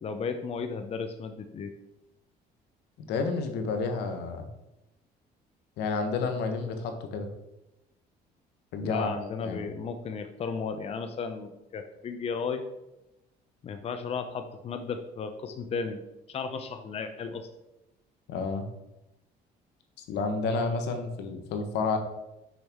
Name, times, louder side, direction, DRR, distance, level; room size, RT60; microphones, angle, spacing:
voice 1, 0.0-1.7 8.8-12.7 13.6-16.0 16.3-17.5, left 5 dB, 35° left, 7 dB, 0.6 m, -34 dB
voice 2, 3.1-4.5 5.8-7.3 8.7-9.1 9.4-9.6 18.3-18.6 20.1-22.0, left 4 dB, 85° left, 6 dB, 1.1 m, -30 dB
6.4 x 6.0 x 3.6 m, 0.93 s
cardioid pair, 110°, 17 cm